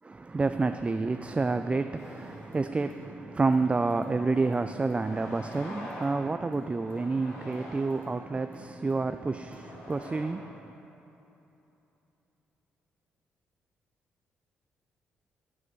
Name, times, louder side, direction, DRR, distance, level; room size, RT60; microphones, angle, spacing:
voice 1, 0.0-10.7, right 3 dB, 25° right, 9 dB, 0.4 m, -29 dB
sound 1, 2.0-2.6 3.1-3.2 4.3-4.4 4.8-6.3 6.7-8.1 9.0-10.2, left 1 dB, 65° left, 2.4 m, -45 dB
sound 2, 2.5-10.5, equal, 40° left, 2.3 m, -55 dB
8.4 x 7.5 x 6.2 m, 3.0 s
hypercardioid pair, 50°, 5 cm